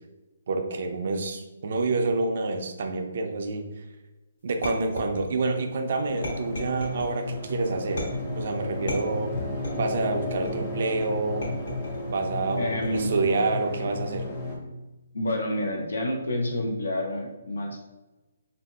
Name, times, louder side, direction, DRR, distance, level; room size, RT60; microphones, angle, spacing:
voice 1, 0.5-3.8 4.4-8.1 8.4-9.4 9.7-11.5 12.1-14.3, right 3 dB, 55° right, 5 dB, 0.4 m, -28 dB
sound 1, 4.6-5.6 6.2-7.1 8.0-8.4 8.9-9.9 10.4-10.8 11.4-12.1 12.8-13.3, left 1 dB, 65° left, 1.2 m, -35 dB
sound 2, 6.1-14.6, left 1 dB, 15° left, 0.6 m, -33 dB
voice 2, 12.6-13.1 15.1-17.8, left 1 dB, 90° left, 2 dB, 0.6 m, -28 dB
2.9 x 2.6 x 2.3 m, 1.1 s
hypercardioid pair, 165°, 0 cm